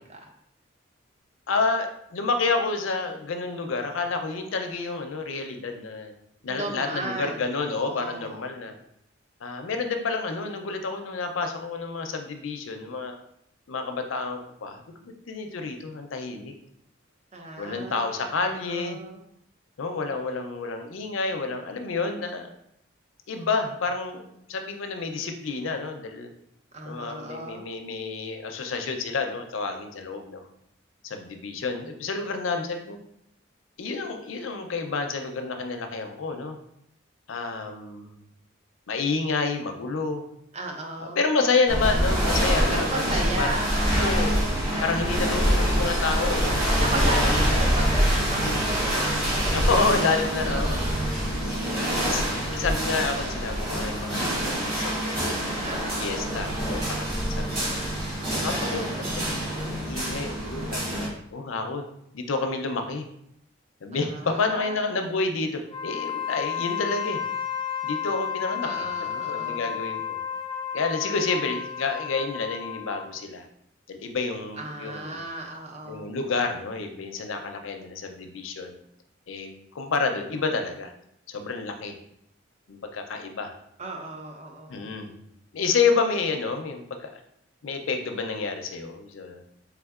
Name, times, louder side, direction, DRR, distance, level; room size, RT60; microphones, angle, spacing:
voice 1, 1.5-6.1 6.4-8.7 9.4-13.2 13.7-16.5 17.6-19.0 19.8-22.5 23.3-26.3 26.8-30.5 31.0-33.0 33.8-36.6 37.3-38.2 38.9-40.2 41.0-43.6 44.0-44.4 44.8-47.6 49.5-50.8 51.4-55.4 56.0-57.8 58.4-61.0 61.3-61.8 62.1-63.1 63.8-67.2 67.8-70.2 70.7-73.5 73.9-75.3 75.8-78.8 79.3-80.9 81.3-81.9 82.7-83.5 84.7-85.2 85.5-87.2 87.6-89.4, left 4 dB, 75° left, 5 dB, 0.5 m, -29 dB
voice 2, 6.5-8.4 17.3-19.2 26.7-27.6 40.5-41.2 42.7-44.5 46.8-49.7 50.0-51.0 55.6-56.2 63.9-64.8 68.6-69.7 74.6-76.1 83.8-84.9, right 2 dB, 35° right, 1 dB, 0.6 m, -35 dB
sound 1, 41.7-61.1, equal, 50° right, 1.5 m, -25 dB
Wind instrument woodwind instrument, 65.7-73.1, left 9 dB, 20° left, 0.4 m, -32 dB
4.3 x 3.4 x 2.4 m, 0.75 s
head